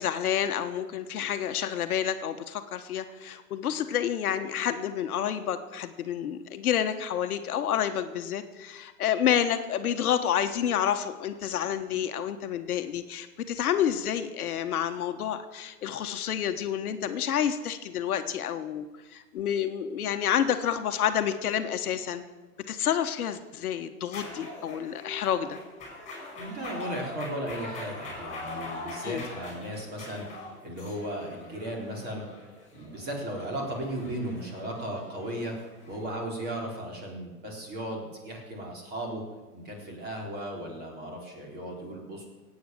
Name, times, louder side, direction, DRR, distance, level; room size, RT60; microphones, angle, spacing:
voice 1, 0.0-22.2 22.7-25.6 29.0-29.3, left 9 dB, 65° left, 8 dB, 1.3 m, -29 dB
sound 1, 24.1-36.0, left 2 dB, 15° left, 5.3 m, -43 dB
voice 2, 26.4-32.2 32.7-35.5 35.9-39.2 39.5-42.2, right 1 dB, 20° right, 0 dB, 4.0 m, -36 dB
17.5 x 8.7 x 7.8 m, 1.2 s
hypercardioid pair, 140°, 47 cm